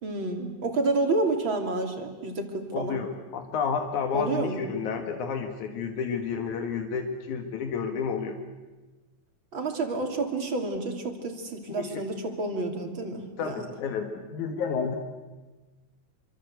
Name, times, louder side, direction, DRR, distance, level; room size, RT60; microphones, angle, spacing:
voice 1, 0.0-3.0 4.1-4.6 9.5-13.7, right 2 dB, 40° right, 4 dB, 3.6 m, -29 dB
voice 2, 2.7-8.4 11.7-11.9 13.4-15.0, left 6 dB, 80° left, 5 dB, 3.0 m, -31 dB
26.5 x 25.0 x 8.0 m, 1.2 s
omnidirectional pair, 3.4 m